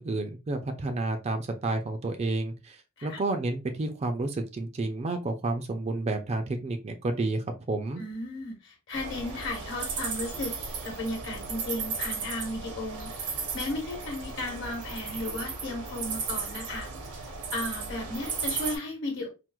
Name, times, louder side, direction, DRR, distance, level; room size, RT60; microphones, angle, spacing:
voice 1, 0.0-8.0, right 2 dB, 30° right, 0.3 m, -30 dB
voice 2, 8.0-10.5 10.8-17.3 17.5-19.3, left 2 dB, 55° left, 1.1 m, -35 dB
sound 1, 8.9-18.8, right 5 dB, 85° right, 0.8 m, -35 dB
4.4 x 2.0 x 2.2 m
head